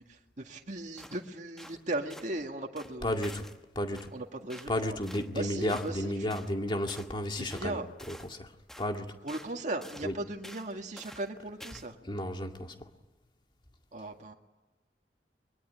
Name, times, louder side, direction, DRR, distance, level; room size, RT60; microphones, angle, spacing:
voice 1, 0.0-3.3 4.1-5.0 5.3-6.4 7.4-7.9 9.2-12.0 13.9-14.3, right 2 dB, 45° right, 2.0 m, -37 dB
sound 1, 1.0-1.2 1.6-1.8 2.1-2.3 2.8-3.6 3.9-4.1 4.5-4.7 5.0-5.3 5.7-6.0 6.3-6.5 6.9-7.1 7.5-7.7 8.0-8.4 8.7-8.9 9.3-9.5 9.8-10.1 10.4-10.7 11.0-11.3 11.6-11.9, equal, 5° left, 1.1 m, -49 dB
voice 2, 3.0-3.5 3.8-4.1 4.7-7.8 8.1-8.5 8.8-9.2 10.0-10.1 12.0-12.9, left 1 dB, 30° left, 2.1 m, -33 dB
23.5 x 22.5 x 9.9 m
head